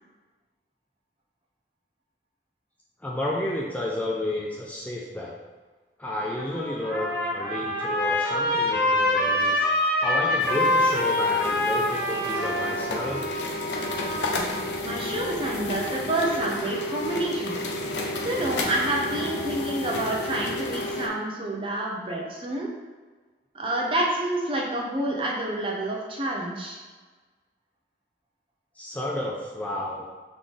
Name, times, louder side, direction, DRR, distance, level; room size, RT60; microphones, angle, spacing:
voice 1, 3.0-5.4 6.0-9.7 10.0-13.2 28.7-30.1, left 1 dB, 10° left, -4 dB, 0.4 m, -31 dB
Trumpet, 6.2-14.6, left 1 dB, 55° left, 1.0 m, -25 dB
sound 1, 10.4-21.1, left 1 dB, 75° left, 0.6 m, -31 dB
voice 2, 14.8-17.6 18.2-22.7 23.5-26.8, right 1 dB, 30° right, -2 dB, 0.7 m, -28 dB
3.8 x 3.2 x 3.7 m, 1.4 s
head